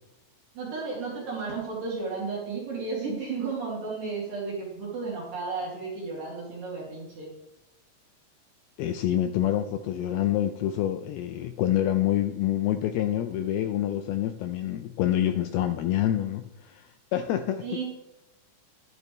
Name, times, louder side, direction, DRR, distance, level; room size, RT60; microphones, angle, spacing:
voice 1, 0.5-7.3 17.6-17.8, right 4 dB, 55° right, -4 dB, 3.8 m, -33 dB
voice 2, 8.8-17.7, left 12 dB, 85° left, 8 dB, 2.2 m, -27 dB
12.0 x 12.0 x 3.2 m, 0.91 s
omnidirectional pair, 5.0 m